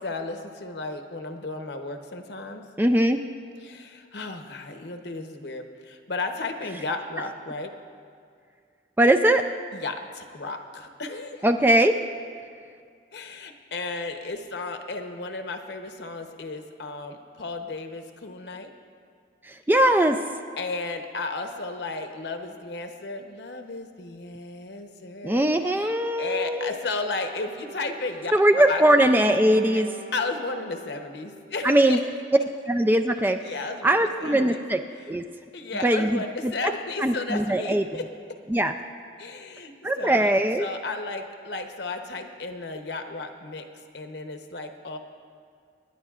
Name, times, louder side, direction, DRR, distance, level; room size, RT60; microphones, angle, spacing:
voice 1, 0.0-2.7 3.6-7.7 9.7-11.5 13.1-18.7 20.6-25.9 26.2-28.8 30.1-32.1 33.4-34.6 35.5-38.1 39.2-40.3 40.6-43.6 43.9-45.0, left 3 dB, 60° left, 6 dB, 0.9 m, -34 dB
voice 2, 2.8-3.2 9.0-9.4 11.4-11.9 19.4-20.2 25.2-26.7 28.3-29.9 31.6-32.0 32.7-33.4 33.8-34.8 35.1-35.2 35.8-36.5 37.0-37.8 38.5-38.7 39.8-40.7, right 1 dB, 10° right, 6 dB, 0.3 m, -20 dB
Wind instrument woodwind instrument, 27.0-31.6, right 1 dB, 50° right, 1.6 m, -44 dB
26.0 x 10.5 x 2.4 m, 2.2 s
head